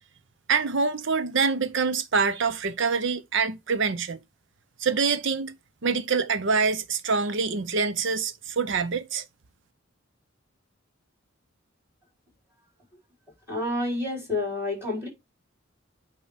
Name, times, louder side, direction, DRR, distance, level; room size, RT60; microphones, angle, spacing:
voice 1, 0.5-4.2 4.8-5.5 5.8-9.2, right 5 dB, 65° right, 0.7 m, -25 dB
voice 2, 13.5-15.1, left 2 dB, 10° right, 4.2 m, -29 dB
8.6 x 2.9 x 4.9 m
head